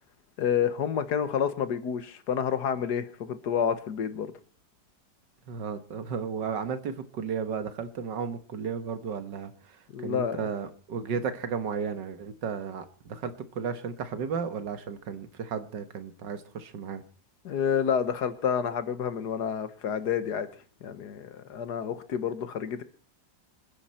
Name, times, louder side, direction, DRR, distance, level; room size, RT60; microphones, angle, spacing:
voice 1, 0.4-4.3 9.9-10.5 17.4-20.5 20.8-22.8, left 8 dB, 65° left, 12 dB, 1.6 m, -29 dB
voice 2, 5.5-17.0, right 6 dB, 75° right, 10 dB, 1.9 m, -34 dB
26.5 x 10.0 x 4.3 m, 0.40 s
omnidirectional pair, 2.0 m